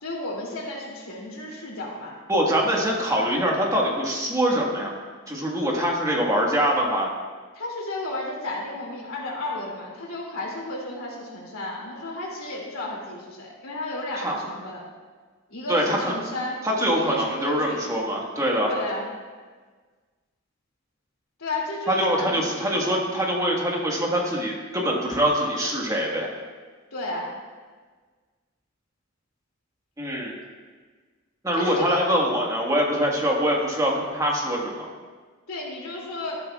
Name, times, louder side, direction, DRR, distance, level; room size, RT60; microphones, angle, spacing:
voice 1, 0.0-2.1 7.5-14.8 15.5-16.6 16.9-17.8 18.7-19.0 21.4-23.0 26.9-27.3 31.5-32.0 35.5-36.4, left 1 dB, 85° left, -3 dB, 2.7 m, -33 dB
voice 2, 2.3-4.9 5.3-7.1 14.2-14.4 15.7-16.1 16.6-18.7 21.9-26.3 30.0-30.3 31.4-34.9, equal, 15° right, -2 dB, 1.6 m, -24 dB
13.0 x 11.0 x 2.4 m, 1.5 s
head